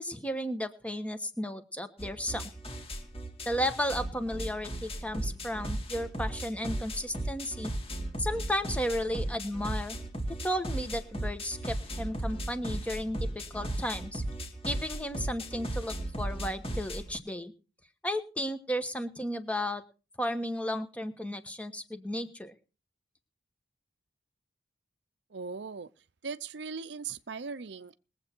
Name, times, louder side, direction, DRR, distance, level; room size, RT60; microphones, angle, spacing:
voice 1, 0.0-2.5 3.4-7.7 8.2-10.0 10.4-14.2 14.6-17.5 18.0-19.8 20.2-22.5, equal, 5° left, 1.2 m, -34 dB
sound 1, 2.0-17.2, right 1 dB, 30° left, 2.2 m, -36 dB
voice 2, 25.3-25.9 26.2-27.9, right 5 dB, 65° right, 0.6 m, -39 dB
21.0 x 8.0 x 4.5 m
head